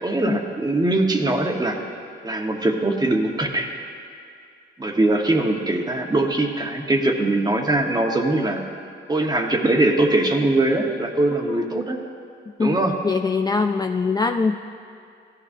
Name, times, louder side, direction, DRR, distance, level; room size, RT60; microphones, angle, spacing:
voice 1, 0.0-1.8 2.2-3.7 4.8-8.6 9.1-12.0 12.6-13.0, right 2 dB, 20° right, 2 dB, 1.2 m, -21 dB
voice 2, 13.0-14.6, left 4 dB, 20° left, 5 dB, 0.3 m, -22 dB
16.0 x 12.5 x 2.7 m, 2.3 s
cardioid pair, 90°, 20 cm